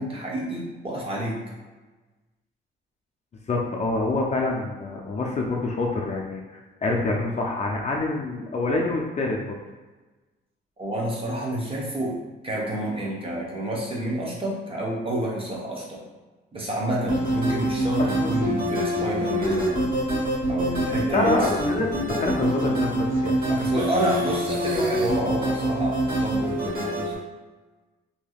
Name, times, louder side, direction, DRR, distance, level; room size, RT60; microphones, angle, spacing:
voice 1, 0.0-1.4 10.8-16.0 16.5-19.9 20.5-21.5 23.5-27.1, right 1 dB, 30° right, -3 dB, 0.8 m, -29 dB
voice 2, 3.5-9.4 18.0-18.4 21.1-23.4, left 2 dB, 35° left, -1 dB, 0.5 m, -26 dB
sound 1, 17.1-27.2, equal, 45° right, 1.2 m, -25 dB
3.2 x 2.7 x 2.3 m, 1.2 s
cardioid pair, 90°, 20 cm